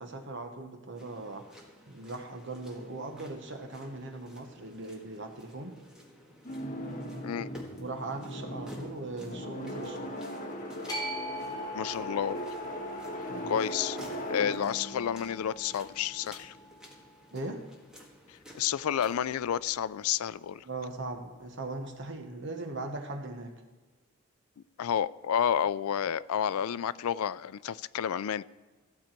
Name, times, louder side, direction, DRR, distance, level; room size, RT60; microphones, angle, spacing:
voice 1, 0.0-1.6 1.9-5.8 7.8-10.2 13.3-13.5 17.3-17.6 20.6-23.6, right 2 dB, 55° right, 1.1 m, -39 dB
sound 1, 1.0-19.4, equal, 5° right, 1.7 m, -53 dB
sound 2, 6.4-16.4, equal, 35° left, 1.8 m, -39 dB
sound 3, 10.9-17.1, equal, 20° left, 3.0 m, -42 dB
voice 2, 11.7-12.5 13.5-14.0 14.3-16.5 18.5-20.7 24.8-28.4, left 9 dB, 80° left, 0.4 m, -30 dB
15.5 x 8.0 x 4.5 m
head